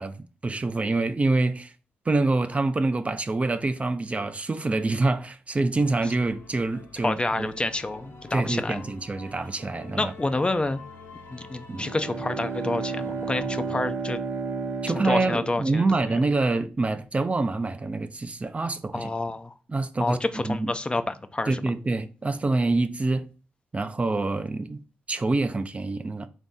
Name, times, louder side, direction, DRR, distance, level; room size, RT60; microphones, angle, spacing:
voice 1, 0.0-1.7 2.1-7.5 8.3-10.1 11.7-11.9 14.8-19.1 19.7-20.8 21.5-23.3 23.7-24.8 25.1-26.3, right 3 dB, 30° right, 0.4 m, -26 dB
sound 1, 5.7-13.9, left 3 dB, 70° left, 1.0 m, -47 dB
voice 2, 7.0-8.8 10.0-10.8 11.3-14.2 15.0-16.2 18.9-19.5 20.0-21.6, left 2 dB, 25° left, 0.4 m, -28 dB
Bowed string instrument, 11.7-16.3, right 4 dB, 80° right, 0.7 m, -32 dB
3.9 x 2.7 x 3.6 m
supercardioid pair, 50°, 4 cm